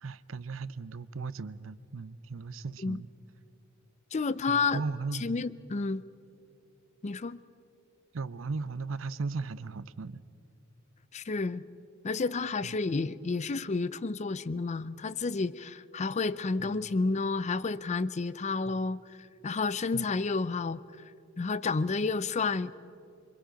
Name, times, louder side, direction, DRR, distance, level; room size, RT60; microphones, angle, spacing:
voice 1, 0.0-3.1 4.5-5.4 8.1-10.2 12.6-12.8 16.6-16.9 18.7-18.8 19.9-20.1, right 4 dB, 70° right, 16 dB, 0.6 m, -37 dB
voice 2, 4.1-4.8 5.2-6.0 7.0-7.4 11.1-11.6 12.0-20.8 21.4-22.7, left 4 dB, 35° left, 17 dB, 0.5 m, -30 dB
27.5 x 24.0 x 5.1 m, 2.6 s
head